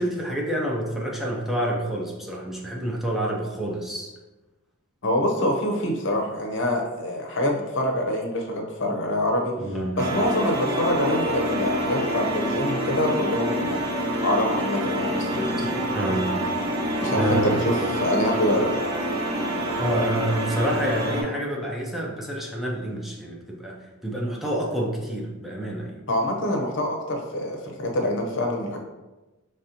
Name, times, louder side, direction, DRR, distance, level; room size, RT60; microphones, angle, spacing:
voice 1, 0.0-4.1 9.6-10.0 15.6-16.4 17.2-17.6 19.8-26.0, right 1 dB, ahead, -3 dB, 0.6 m, -28 dB
voice 2, 5.0-9.5 9.9-15.7 17.0-18.7 26.1-28.8, left 1 dB, 60° left, 1 dB, 0.8 m, -25 dB
sound 1, 10.0-21.2, equal, 50° right, 0.9 m, -27 dB
5.3 x 3.2 x 2.8 m, 1.1 s
head